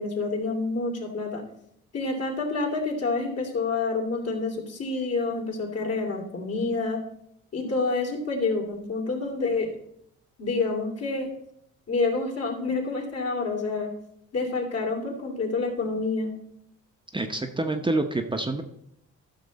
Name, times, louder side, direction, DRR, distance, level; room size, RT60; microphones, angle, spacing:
voice 1, 0.0-1.4 1.9-7.0 7.5-9.7 10.4-11.3 11.9-13.9 14.3-16.4, left 3 dB, 55° left, 0 dB, 2.8 m, -28 dB
voice 2, 17.1-18.6, right 2 dB, 15° right, 4 dB, 0.9 m, -27 dB
13.0 x 6.2 x 4.1 m, 0.74 s
cardioid pair, 90°, 30 cm